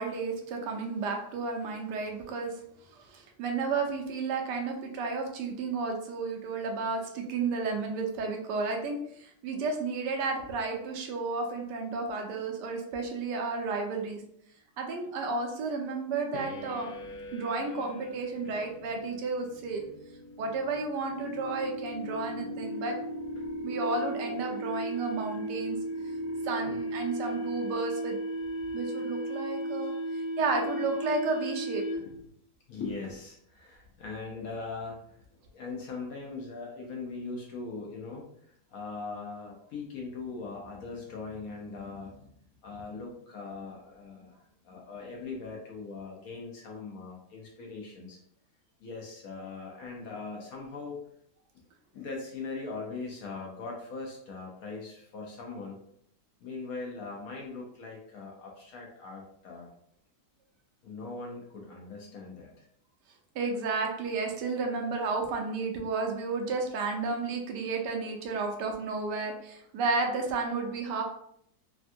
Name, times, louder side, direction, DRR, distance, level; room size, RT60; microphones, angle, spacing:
voice 1, 0.0-2.5 3.0-14.2 14.8-16.9 17.3-19.8 20.4-22.9 23.6-25.8 26.4-28.2 28.7-29.9 30.4-31.8 63.3-71.0, right 4 dB, 80° right, 2 dB, 1.2 m, -32 dB
sound 1, 16.3-32.3, right 1 dB, 90° left, 1.2 m, -36 dB
voice 2, 32.7-42.4 42.6-44.4 44.6-48.2 48.8-51.0 51.9-55.8 56.4-59.7 60.8-62.7, left 4 dB, 70° left, 0 dB, 0.9 m, -40 dB
3.4 x 2.2 x 2.5 m, 0.69 s
omnidirectional pair, 1.8 m